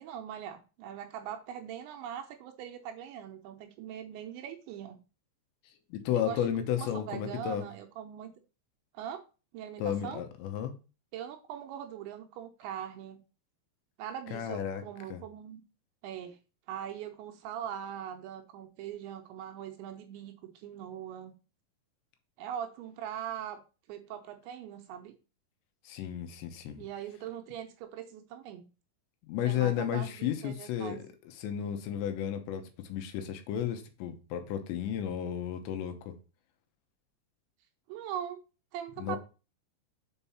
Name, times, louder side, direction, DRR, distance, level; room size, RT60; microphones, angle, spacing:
voice 1, 0.0-5.0 6.1-8.3 8.9-9.2 9.5-10.2 11.1-13.2 14.0-15.6 16.0-16.4 16.7-21.4 22.4-23.6 23.9-25.2 26.8-28.7 29.4-31.0 37.9-38.4 38.7-39.2, right 9 dB, 80° right, 2.9 m, -41 dB
voice 2, 5.9-7.7 9.8-10.7 14.3-14.8 15.1-15.2 25.9-26.8 29.2-31.0 31.4-36.1 39.0-39.2, left 10 dB, 75° left, 3.0 m, -33 dB
7.3 x 4.6 x 4.2 m
omnidirectional pair, 5.5 m